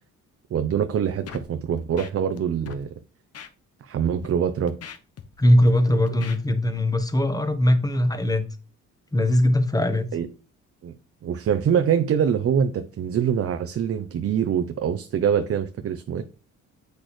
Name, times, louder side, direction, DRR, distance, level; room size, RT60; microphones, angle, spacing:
voice 1, 0.5-2.9 3.8-4.7 5.9-6.0 10.1-10.3 10.8-10.9 11.2-16.2, right 8 dB, 50° right, 0.7 m, -24 dB
Scratching (performance technique), 1.3-1.5 1.8-2.4 2.7-2.8 3.3-3.5 4.1-4.3 4.7-5.7 6.1-6.4, left 7 dB, 55° left, 0.9 m, -40 dB
voice 2, 5.4-8.4 9.1-10.1, left 1 dB, 10° left, 1.2 m, -20 dB
8.3 x 6.3 x 3.2 m
cardioid pair, 90°, 30 cm